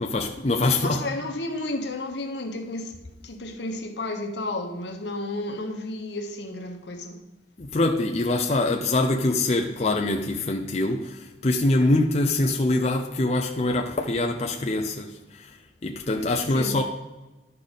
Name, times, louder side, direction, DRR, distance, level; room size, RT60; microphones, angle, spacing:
voice 1, 0.0-1.0 7.6-15.6 15.8-16.8, left 2 dB, 35° left, 0.5 m, -24 dB
voice 2, 0.8-2.9 3.2-7.2 16.5-16.8, left 2 dB, 75° left, 1.2 m, -32 dB
12.0 x 5.0 x 4.1 m
head